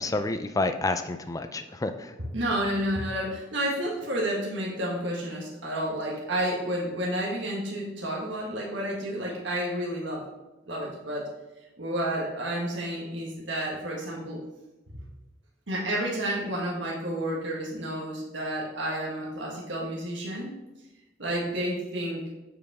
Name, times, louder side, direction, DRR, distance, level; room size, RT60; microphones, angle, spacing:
voice 1, 0.0-2.1, left 2 dB, 20° left, 8 dB, 0.4 m, -29 dB
voice 2, 2.2-10.2 10.7-11.3 11.8-14.4 14.9-15.0 15.7-20.5 21.2-22.2, right 1 dB, 70° right, -3 dB, 1.6 m, -30 dB
8.4 x 5.0 x 3.6 m, 1.0 s
head